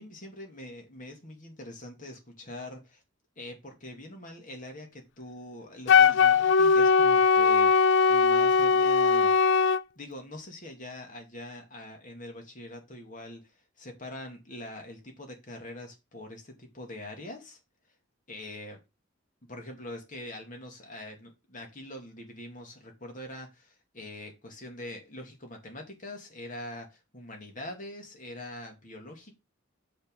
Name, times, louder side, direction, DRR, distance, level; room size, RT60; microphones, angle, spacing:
voice 1, 0.0-3.0 3.4-7.8 8.1-9.6 10.0-17.6 18.3-18.8 19.4-29.3, left 1 dB, 45° left, 2.4 m, -43 dB
Wind instrument woodwind instrument, 5.9-9.8, left 5 dB, 65° left, 0.4 m, -20 dB
6.6 x 5.6 x 5.5 m
head